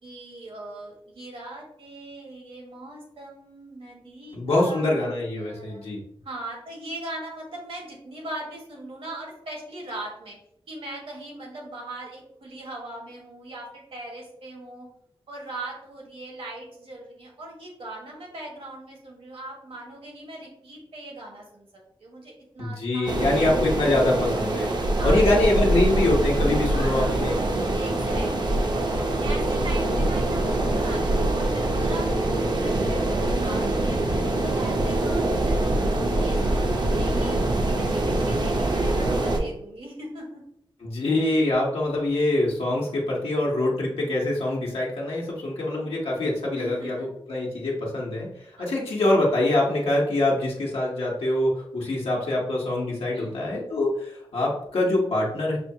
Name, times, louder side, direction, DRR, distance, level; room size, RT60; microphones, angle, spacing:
voice 1, 0.0-5.9 6.2-10.4 10.7-14.9 15.3-21.7 22.0-23.4 25.0-25.7 26.7-27.3 27.7-34.0 34.4-40.4 46.6-47.1 48.6-48.7 53.1-53.8, right 1 dB, 75° right, -1 dB, 1.4 m, -40 dB
voice 2, 4.3-6.0 22.6-24.8 25.0-27.4 40.8-48.3 48.6-55.6, left 1 dB, 85° left, -4 dB, 0.9 m, -24 dB
sound 1, 23.1-39.4, right 1 dB, 50° right, 0.6 m, -24 dB
6.0 x 2.3 x 2.7 m, 0.72 s
wide cardioid pair, 100°, 10 cm